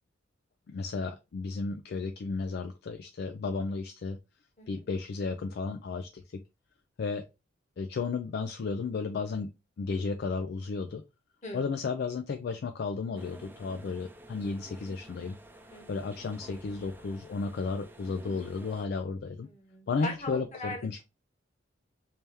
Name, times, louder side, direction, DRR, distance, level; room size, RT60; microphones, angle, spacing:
voice 1, 0.7-4.2 4.7-6.4 7.0-7.3 7.8-9.5 9.8-11.0 11.5-15.4 15.9-19.5 19.9-21.0, left 4 dB, 55° left, 0.4 m, -33 dB
sound 1, 13.1-18.9, right 1 dB, 10° right, 0.5 m, -51 dB
voice 2, 15.7-16.0 19.4-21.0, left 2 dB, 35° left, 1.3 m, -40 dB
3.3 x 2.8 x 3.4 m
head